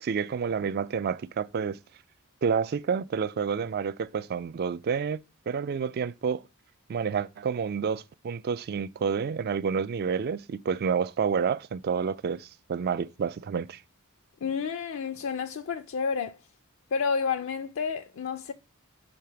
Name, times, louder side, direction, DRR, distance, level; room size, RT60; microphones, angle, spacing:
voice 1, 0.0-1.8 2.4-6.4 6.9-13.8, right 6 dB, 45° right, 0.3 m, -29 dB
voice 2, 14.4-16.4 16.9-18.5, left 6 dB, 65° left, 0.4 m, -30 dB
6.6 x 3.4 x 5.7 m
head